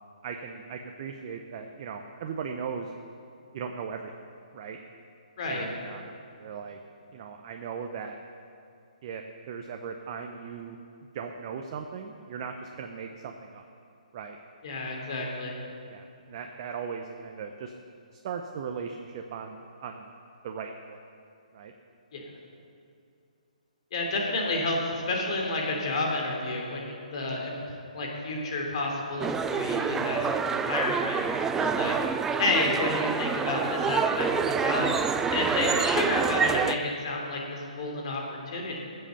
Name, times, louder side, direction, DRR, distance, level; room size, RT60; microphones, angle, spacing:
voice 1, 0.2-2.9 3.5-4.1 4.5-4.8 5.4-6.1 6.4-6.8 7.1-8.2 9.0-10.8 11.1-13.6 14.1-14.4 15.1-15.2 15.9-17.7 18.1-20.1 20.4-21.0 21.5-21.7, right 6 dB, 40° right, 4 dB, 0.8 m, -38 dB
voice 2, 14.6-15.6 22.1-22.3 23.9-27.6 27.9-32.0 32.4-35.0 35.3-38.8, left 2 dB, 50° left, -1 dB, 3.0 m, -30 dB
sound 1, 29.2-36.8, right 6 dB, 10° right, 0.3 m, -27 dB
14.0 x 7.7 x 7.1 m, 2.4 s
hypercardioid pair, 145°, 4 cm